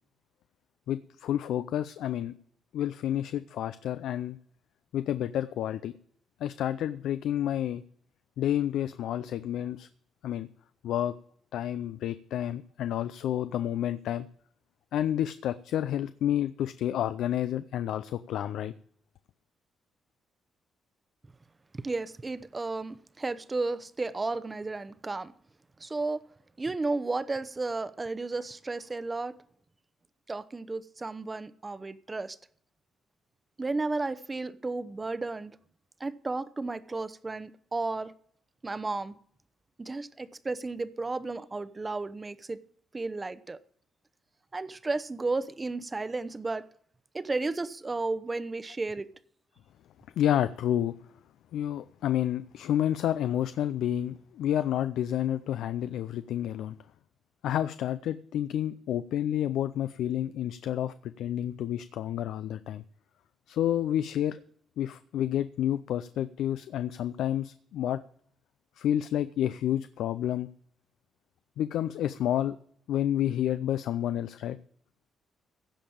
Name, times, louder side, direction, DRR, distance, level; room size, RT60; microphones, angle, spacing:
voice 1, 0.9-2.3 2.7-4.4 4.9-5.9 6.4-7.8 8.4-9.9 10.2-10.5 10.8-11.1 11.5-14.3 14.9-18.7 50.2-50.9 51.5-56.7 57.4-62.8 63.5-64.4 64.8-68.0 68.8-70.5 71.6-72.6 72.9-74.6, left 11 dB, 80° left, 0.5 m, -30 dB
voice 2, 21.7-25.3 25.8-26.2 26.6-29.3 30.3-32.4 33.6-35.6 36.0-38.1 38.6-39.2 39.8-42.6 42.9-43.6 44.5-46.7 47.1-49.1, right 3 dB, 25° right, 0.8 m, -33 dB
16.0 x 5.3 x 8.7 m
cardioid pair, 90°, 0 cm